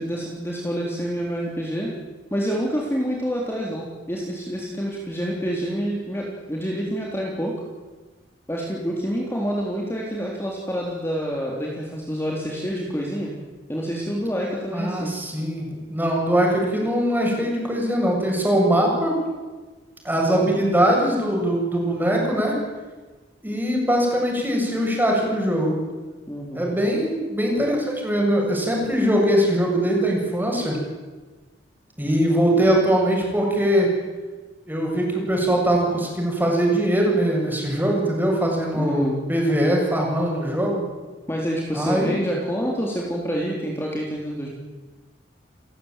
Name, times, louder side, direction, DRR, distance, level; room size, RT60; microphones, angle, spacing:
voice 1, 0.0-1.9 2.3-7.5 8.5-13.3 13.7-15.1 26.3-26.6 38.7-39.2 41.3-44.5, equal, 15° left, -2 dB, 3.7 m, -27 dB
voice 2, 14.7-19.1 20.0-22.6 23.4-25.7 26.5-30.8 32.0-33.9 34.7-40.8 41.7-42.1, right 1 dB, 10° right, -1 dB, 7.6 m, -21 dB
30.0 x 15.5 x 9.2 m, 1.3 s
head